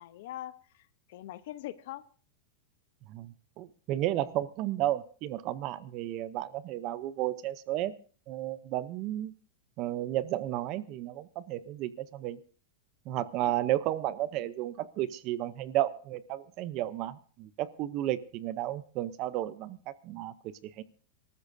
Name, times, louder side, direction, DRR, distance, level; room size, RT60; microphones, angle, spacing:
voice 1, 0.0-2.0, left 14 dB, 55° left, 16 dB, 0.7 m, -42 dB
voice 2, 3.1-8.0 8.3-9.3 9.8-12.4 13.1-20.8, right 14 dB, 35° right, 16 dB, 0.6 m, -33 dB
26.0 x 13.5 x 2.6 m, 0.41 s
supercardioid pair, 170°, 0 cm